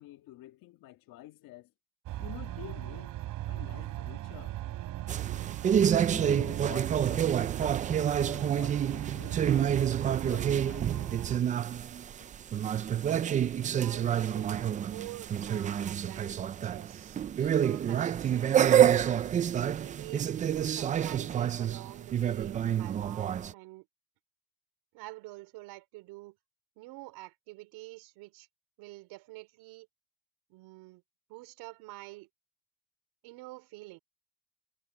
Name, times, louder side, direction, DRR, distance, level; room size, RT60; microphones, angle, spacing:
voice 1, 0.0-1.7 2.2-3.1 3.5-4.6 6.0-11.2, left 15 dB, 60° left, 1.9 m, -49 dB
sound 1, 2.1-11.4, right 14 dB, 55° right, 3.4 m, -38 dB
sound 2, 5.1-23.5, right 9 dB, 20° right, 0.3 m, -28 dB
voice 2, 12.6-16.3 16.6-19.3 19.8-23.9 24.9-26.4 26.8-28.5 28.8-29.9 30.5-31.0 31.3-32.3 33.2-34.0, right 21 dB, 80° right, 4.7 m, -47 dB
cardioid pair, 150°, 38 cm